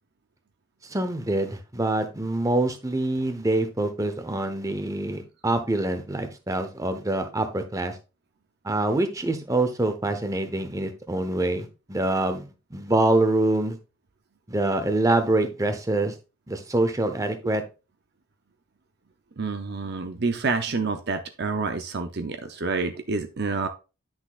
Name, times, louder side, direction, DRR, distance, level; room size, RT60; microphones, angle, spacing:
voice 1, 0.8-8.0 8.6-13.8 14.5-16.1 16.5-17.6, right 2 dB, 15° right, 8 dB, 0.8 m, -25 dB
voice 2, 19.4-23.7, right 4 dB, 50° right, 7 dB, 0.6 m, -28 dB
10.5 x 6.2 x 2.4 m, 0.30 s
head